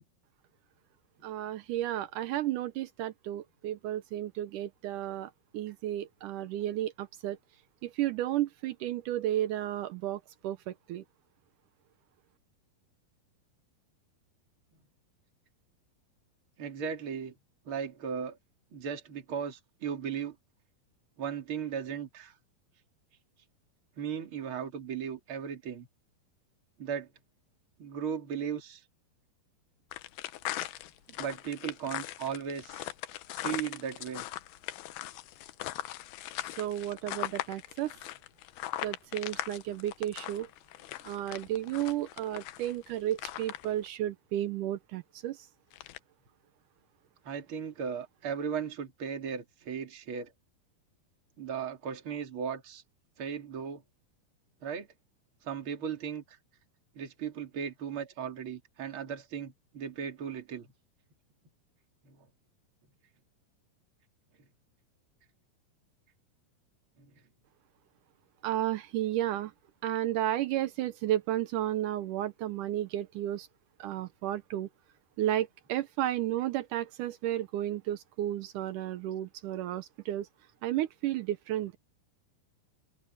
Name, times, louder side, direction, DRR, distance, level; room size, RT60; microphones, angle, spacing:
voice 1, 1.2-7.4 7.8-11.0 36.4-38.0 38.8-40.5 41.1-45.5 68.4-69.5 69.8-73.5 73.8-74.7 75.2-80.3 80.6-81.8, right 13 dB, 80° right, 1.9 m, -33 dB
voice 2, 16.6-17.3 17.7-18.4 18.7-20.3 21.2-22.3 24.0-25.9 26.8-27.1 27.8-28.8 31.2-32.9 33.3-34.3 47.2-50.3 51.4-52.8 53.2-53.8 54.6-54.9 55.4-56.4 56.9-60.7 62.0-62.2 67.0-67.1, right 7 dB, 35° right, 3.2 m, -36 dB
sound 1, 29.9-43.9 45.7-46.0, left 15 dB, 80° left, 2.7 m, -40 dB
omnidirectional pair, 4.4 m